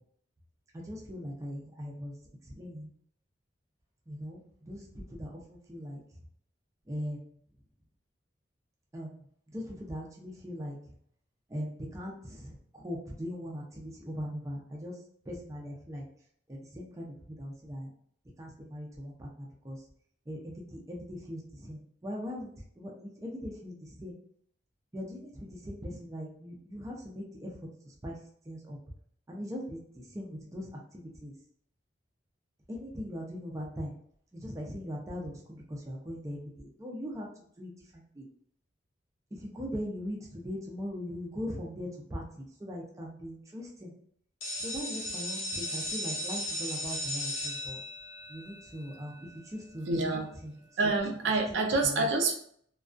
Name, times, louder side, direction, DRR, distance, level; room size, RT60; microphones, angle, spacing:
voice 1, 0.7-2.1 2.5-2.9 4.1-6.0 6.9-7.2 8.9-9.1 9.5-10.8 11.5-14.9 15.3-16.0 16.5-17.9 18.4-19.8 20.3-24.1 24.9-27.5 28.0-28.2 28.5-28.8 29.3-30.7 30.9-31.3 32.7-33.9 34.3-37.3 37.6-38.3 39.3-43.9 44.6-47.8 48.3-49.1 49.5-50.5 51.8-52.1, equal, 15° right, -1 dB, 0.4 m, -40 dB
sound 1, 44.4-50.1, left 1 dB, 70° left, 0.9 m, -37 dB
voice 2, 49.9-50.3 50.8-52.3, right 3 dB, 75° right, 3 dB, 0.4 m, -27 dB
2.3 x 2.2 x 2.4 m, 0.64 s
head